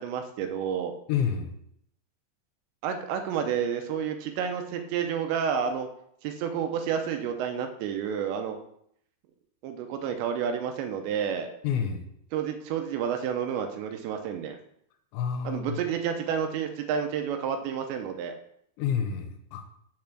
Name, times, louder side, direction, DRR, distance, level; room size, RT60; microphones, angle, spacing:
voice 1, 0.0-0.9 2.8-5.9 6.2-8.6 9.6-11.5 12.3-14.6 15.4-18.3, right 7 dB, 85° right, 6 dB, 2.9 m, -30 dB
voice 2, 1.1-1.5 11.6-12.0 15.1-15.8 18.8-19.6, left 7 dB, 80° left, 6 dB, 3.2 m, -29 dB
6.8 x 5.4 x 6.0 m, 0.71 s
omnidirectional pair, 5.3 m